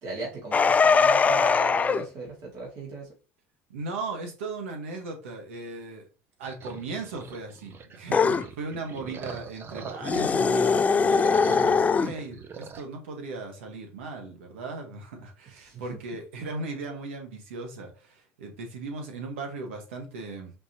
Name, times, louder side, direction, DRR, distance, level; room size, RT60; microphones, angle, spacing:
voice 1, 0.0-3.1 8.0-8.4 15.6-15.8, right 3 dB, 60° right, -4 dB, 2.3 m, -37 dB
sound 1, 0.5-2.0 8.1-8.4 10.0-12.1, left 5 dB, 25° left, 0.3 m, -21 dB
voice 2, 3.7-6.1 6.4-20.5, right 3 dB, 90° right, 3 dB, 1.4 m, -37 dB
sound 2, 6.4-10.3 10.6-12.8, right 6 dB, 35° right, 0.8 m, -42 dB
5.2 x 3.3 x 2.9 m, 0.33 s
supercardioid pair, 90°, 6 cm